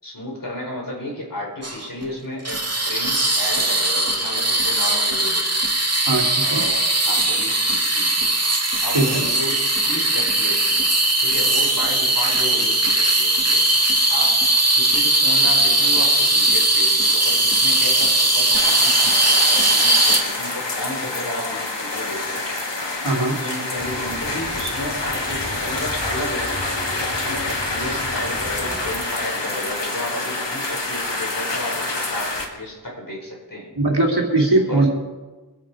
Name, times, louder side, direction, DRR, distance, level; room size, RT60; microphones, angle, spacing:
voice 1, 0.0-5.6 6.4-8.3 8.8-10.9 11.2-14.4 14.8-19.1 19.4-22.4 23.1-26.6 27.1-33.8 34.4-34.9, left 1 dB, 50° left, -2 dB, 4.8 m, -33 dB
sound 1, 1.6-2.1 2.4-20.2, right 2 dB, 35° right, 2.1 m, -19 dB
voice 2, 6.1-6.6 8.9-9.2 23.0-23.3 33.8-34.9, right 2 dB, 65° right, 0 dB, 2.8 m, -20 dB
sound 2, 18.5-32.4, left 2 dB, 85° left, 1.9 m, -27 dB
sound 3, 23.8-29.0, equal, 30° left, 3.9 m, -36 dB
24.0 x 8.8 x 4.9 m, 1.3 s
wide cardioid pair, 50°, 42 cm